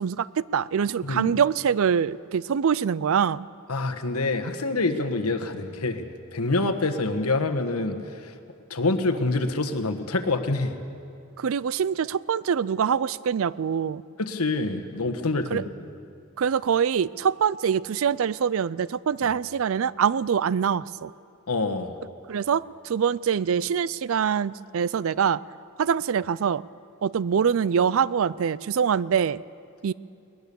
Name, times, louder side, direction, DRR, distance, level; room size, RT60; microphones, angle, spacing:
voice 1, 0.0-3.5 11.4-14.0 15.5-15.6 16.4-21.1 22.3-25.4 25.8-26.6 27.0-29.4 29.8-29.9, right 7 dB, 65° right, 20 dB, 0.4 m, -24 dB
voice 2, 1.0-1.3 3.7-6.0 6.3-8.0 8.7-10.7 14.2-15.7 21.5-21.9, left 2 dB, 90° left, 6 dB, 1.4 m, -26 dB
21.0 x 20.0 x 6.9 m, 2.5 s
head